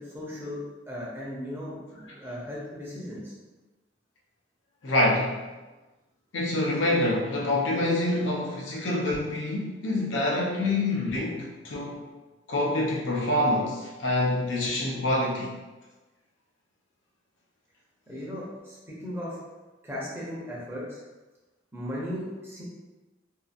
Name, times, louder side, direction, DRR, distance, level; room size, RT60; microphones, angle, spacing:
voice 1, 0.0-3.3 18.1-19.4 19.8-21.0 21.7-22.6, left 1 dB, 10° right, -6 dB, 0.7 m, -37 dB
voice 2, 4.8-5.4 6.3-12.1 12.5-15.5, left 1 dB, 80° left, -2 dB, 0.6 m, -26 dB
2.7 x 2.5 x 2.5 m, 1.2 s
head